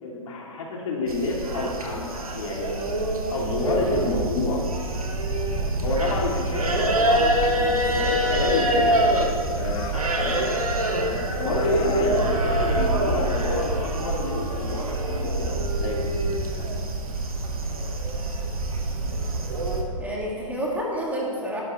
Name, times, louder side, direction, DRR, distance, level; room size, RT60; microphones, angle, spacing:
voice 1, 0.0-2.7 3.3-4.6 5.8-9.0 9.5-10.4 11.1-16.1, left 2 dB, 65° left, -3 dB, 3.0 m, -29 dB
sound 1, 1.1-19.8, right 1 dB, 85° right, 1.6 m, -25 dB
Laughter, 7.6-9.3 9.6-11.1 11.5-13.8, left 8 dB, 25° left, 0.8 m, -42 dB
voice 2, 7.7-8.9 20.0-21.6, equal, 10° right, -3 dB, 2.2 m, -31 dB
12.0 x 11.0 x 3.3 m, 2.3 s
hypercardioid pair, 120°, 18 cm